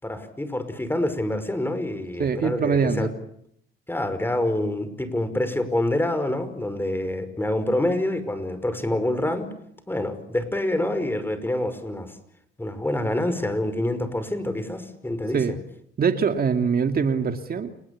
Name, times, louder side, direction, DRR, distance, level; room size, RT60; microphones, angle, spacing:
voice 1, 0.0-3.1 3.9-9.5 9.9-12.2 12.6-15.4, left 1 dB, 10° left, 11 dB, 5.5 m, -26 dB
voice 2, 2.2-3.1 15.3-15.5 16.0-17.9, right 6 dB, 50° right, 6 dB, 2.4 m, -23 dB
29.5 x 20.0 x 8.6 m, 0.72 s
cardioid pair, 90°, 20 cm